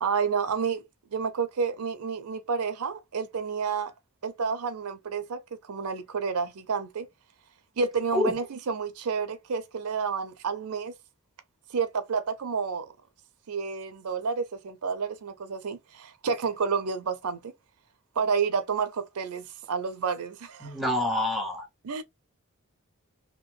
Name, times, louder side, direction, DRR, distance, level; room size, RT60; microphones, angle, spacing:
voice 1, 0.0-0.8 1.1-3.9 4.2-7.1 7.8-10.9 11.7-12.9 13.5-17.5 18.2-20.7 21.8-22.0, right 5 dB, 90° right, 0.5 m, -30 dB
voice 2, 20.6-21.7, left 1 dB, ahead, 0.9 m, -27 dB
2.9 x 2.2 x 3.0 m
head